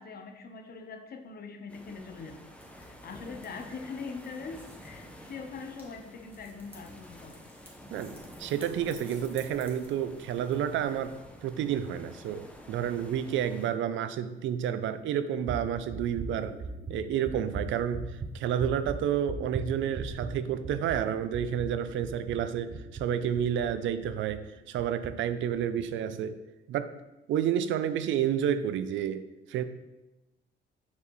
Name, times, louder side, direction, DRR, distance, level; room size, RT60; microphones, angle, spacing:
voice 1, 0.0-2.4 2.7-7.4 7.8-8.0, left 4 dB, 50° left, 6 dB, 0.8 m, -42 dB
sound 1, 1.7-13.7, equal, 5° left, 0.8 m, -50 dB
sound 2, 2.6-11.2, right 1 dB, 10° right, 1.7 m, -56 dB
voice 2, 7.9-16.6 16.9-26.4 26.7-26.9 27.3-29.6, right 9 dB, 75° right, 12 dB, 0.4 m, -30 dB
sound 3, 15.4-24.4 24.8-25.1 25.5-25.8, right 3 dB, 35° right, 0.7 m, -39 dB
6.9 x 4.5 x 3.1 m, 1.0 s
cardioid pair, 90°, 20 cm